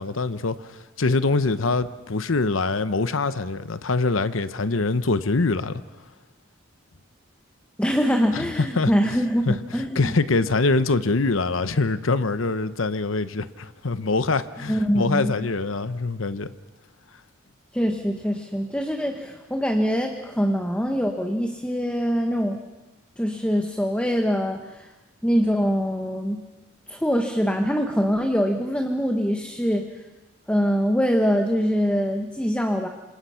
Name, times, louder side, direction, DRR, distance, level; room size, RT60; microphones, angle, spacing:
voice 1, 0.0-5.8 8.3-8.9 9.5-16.5, left 3 dB, 85° left, 0.9 m, -24 dB
voice 2, 7.8-10.1 14.7-15.3 17.7-22.6 23.2-24.9 25.2-26.4 26.9-29.9 30.5-32.9, equal, 5° left, 1.3 m, -23 dB
27.0 x 26.5 x 5.8 m
head